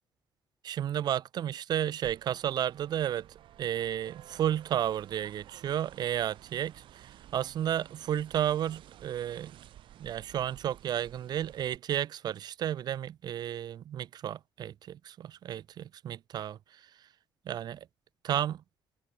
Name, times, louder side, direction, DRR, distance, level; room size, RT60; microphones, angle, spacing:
voice 1, 0.6-3.3 3.6-9.5 10.0-17.1 17.5-17.8 18.2-18.6, right 10 dB, 55° right, 0.5 m, -32 dB
sound 1, 2.0-11.8, right 12 dB, 70° right, 5.1 m, -54 dB
open air
cardioid pair, 135°, 9 cm